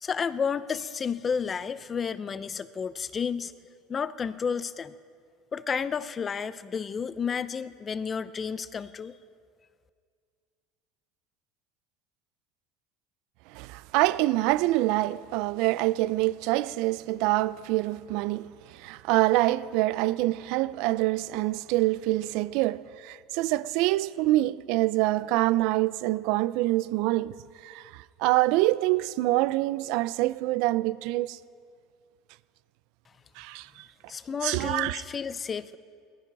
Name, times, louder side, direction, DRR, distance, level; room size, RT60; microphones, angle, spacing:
voice 1, 0.0-3.5 3.9-4.9 5.5-9.2 34.1-35.8, left 6 dB, 20° left, 0.5 m, -31 dB
voice 2, 13.5-27.3 27.6-31.4 33.4-33.9 34.4-35.0, right 18 dB, 65° right, 0.4 m, -26 dB
17.5 x 14.5 x 5.2 m
cardioid pair, 145°, 0 cm